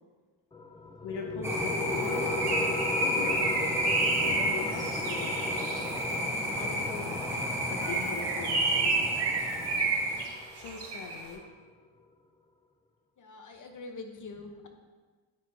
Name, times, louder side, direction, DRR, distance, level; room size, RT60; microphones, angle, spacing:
sound 1, 0.5-11.5, left 3 dB, 15° left, 0.3 m, -38 dB
voice 1, 1.0-2.3 3.0-3.6 4.1-5.3 6.5-7.2 7.7-9.3 10.5-11.4, left 5 dB, 65° left, 2 dB, 0.7 m, -40 dB
sound 2, 1.4-10.3, equal, 5° right, 1.3 m, -33 dB
Bird, 2.0-6.1 7.7-11.2, right 3 dB, 55° right, 1.5 m, -30 dB
voice 2, 13.2-14.7, left 3 dB, 40° left, 4 dB, 0.9 m, -44 dB
10.5 x 4.6 x 2.8 m, 1.4 s
cardioid pair, 95°, 47 cm